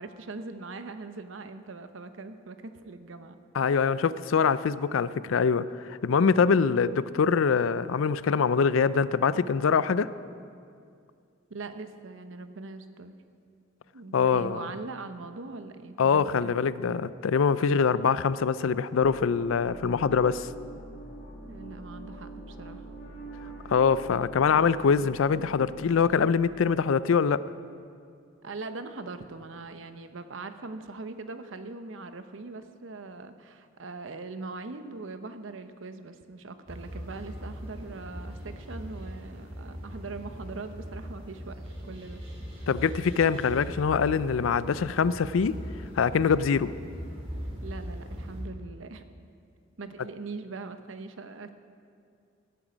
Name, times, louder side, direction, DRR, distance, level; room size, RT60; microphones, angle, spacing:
voice 1, 0.0-3.4 3.7-3.9 11.5-13.1 13.9-17.0 21.4-22.9 28.4-42.2 42.6-42.7 47.6-49.3 49.8-51.5, right 3 dB, 70° right, 9 dB, 0.8 m, -41 dB
voice 2, 3.5-10.1 14.1-14.7 16.0-20.5 23.7-27.4 42.7-45.6 46.0-46.7, left 6 dB, 85° left, 16 dB, 0.4 m, -24 dB
sound 1, 19.0-26.2, right 2 dB, 55° left, 1.8 m, -44 dB
sound 2, 36.7-48.4, equal, 30° right, 2.9 m, -40 dB
17.0 x 10.0 x 5.2 m, 2.3 s
head